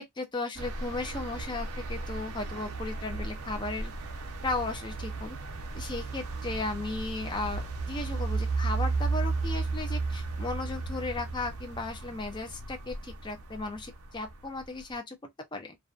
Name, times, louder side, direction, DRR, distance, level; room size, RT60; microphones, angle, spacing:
voice 1, 0.0-3.9 4.4-5.4 5.7-15.2 15.5-15.8, left 3 dB, 20° left, 0.5 m, -35 dB
sound 1, 0.6-15.0, right 3 dB, 85° right, 0.6 m, -34 dB
2.6 x 2.2 x 2.3 m
head